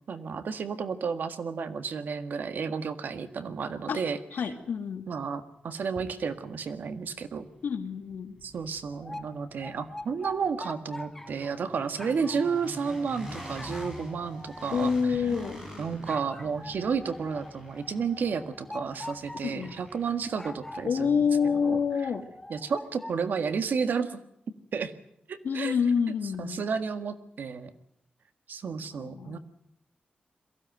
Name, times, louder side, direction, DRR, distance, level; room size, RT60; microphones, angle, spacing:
voice 1, 0.1-4.2 5.1-7.5 8.4-15.3 15.8-21.2 21.5-21.8 22.5-24.2 24.7-24.9 25.3-25.8 26.4-27.7 28.5-29.4, right 5 dB, 70° right, 10 dB, 1.7 m, -32 dB
voice 2, 4.3-5.1 7.6-8.4 14.7-15.6 19.4-19.7 20.8-22.3 25.4-26.6 28.9-29.4, left 6 dB, 80° left, 8 dB, 2.1 m, -27 dB
sound 1, 5.7-5.8 6.3-22.2, equal, 20° right, 7.4 m, -47 dB
sound 2, 8.9-11.6 12.0-15.6 16.1-19.8 20.3-23.2, left 1 dB, 10° left, 1.1 m, -44 dB
22.5 x 15.5 x 9.2 m, 0.78 s
wide cardioid pair, 145°, 3 cm